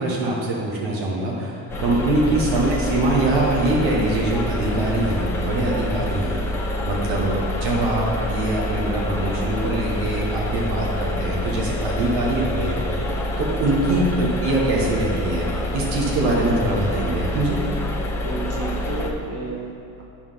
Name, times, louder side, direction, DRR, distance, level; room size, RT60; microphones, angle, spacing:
voice 1, 0.0-6.4 6.9-17.6, right 2 dB, 70° right, -3 dB, 1.5 m, -23 dB
sound 1, 1.7-19.1, left 1 dB, 5° left, 0.7 m, -27 dB
voice 2, 18.2-20.1, right 3 dB, 35° right, -2 dB, 1.4 m, -32 dB
9.2 x 4.6 x 5.7 m, 2.5 s
cardioid pair, 145°, 42 cm